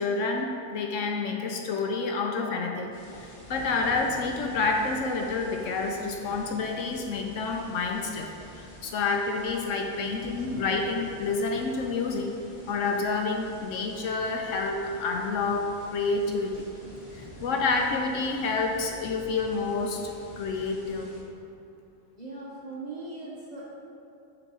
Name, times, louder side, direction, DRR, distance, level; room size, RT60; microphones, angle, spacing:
voice 1, 0.0-2.9 3.2-8.3 8.6-12.3 12.7-16.7 17.1-21.1, left 4 dB, 65° left, 2 dB, 0.9 m, -29 dB
sound 1, 2.9-21.2, equal, 50° left, 1.7 m, -46 dB
voice 2, 22.2-23.8, right 2 dB, 40° right, -6 dB, 0.7 m, -39 dB
7.4 x 3.0 x 6.0 m, 2.7 s
omnidirectional pair, 1.5 m